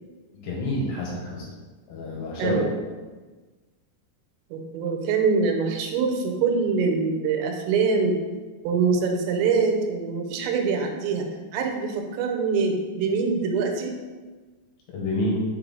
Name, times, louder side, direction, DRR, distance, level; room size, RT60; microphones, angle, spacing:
voice 1, 0.4-1.4 1.9-2.6 14.9-15.4, left 1 dB, 70° left, -3 dB, 2.9 m, -28 dB
voice 2, 2.4-2.7 4.5-8.2 8.6-11.3 11.5-14.0, right 5 dB, 85° right, 4 dB, 3.4 m, -24 dB
7.1 x 4.7 x 3.9 m, 1.3 s
omnidirectional pair, 5.8 m